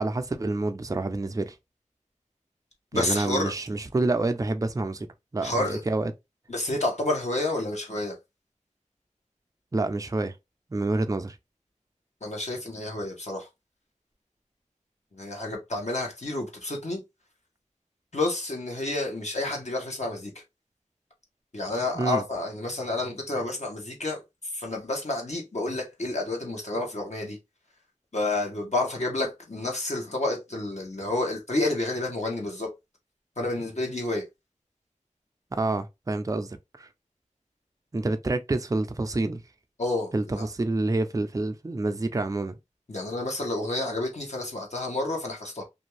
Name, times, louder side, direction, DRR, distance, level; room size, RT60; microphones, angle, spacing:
voice 1, 0.0-1.5 2.9-5.1 5.3-6.1 9.7-10.3 10.7-11.4 21.9-22.2 35.5-36.9 37.9-39.4 40.1-42.6, right 2 dB, 25° right, 0.4 m, -28 dB
voice 2, 2.9-3.5 5.4-5.8 6.5-8.2 12.2-13.5 15.1-17.0 18.1-20.4 21.5-24.2 24.5-27.4 28.1-32.7 33.4-34.2 39.8-40.5 42.9-45.6, left 2 dB, 60° left, 0.9 m, -29 dB
2.5 x 2.3 x 3.0 m
wide cardioid pair, 40°, 13 cm